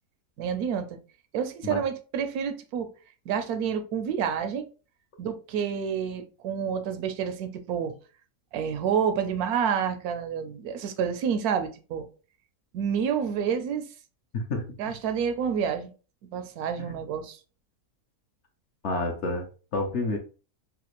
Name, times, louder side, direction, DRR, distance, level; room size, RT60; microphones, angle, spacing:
voice 1, 0.4-1.0 1.3-2.9 3.3-4.7 5.2-7.9 8.5-12.1 12.7-13.9 14.8-15.9 16.3-17.4, right 7 dB, 85° right, 1.1 m, -29 dB
voice 2, 14.3-14.7 16.8-17.0 18.8-19.5 19.7-20.2, left 2 dB, 60° left, 0.8 m, -29 dB
3.2 x 2.4 x 2.9 m
omnidirectional pair, 1.5 m